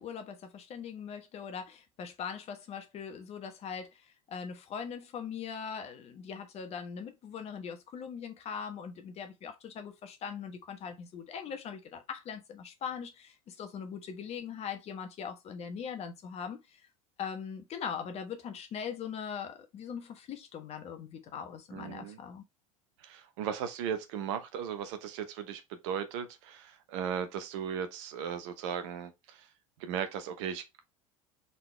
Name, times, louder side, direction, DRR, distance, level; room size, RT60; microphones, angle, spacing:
voice 1, 0.0-16.9 17.2-22.4, left 7 dB, 35° left, 1.1 m, -41 dB
voice 2, 21.7-22.2 23.0-29.5 29.8-30.6, right 8 dB, 55° right, 0.9 m, -37 dB
4.1 x 3.9 x 3.1 m
figure-of-eight pair, 70°, 18 cm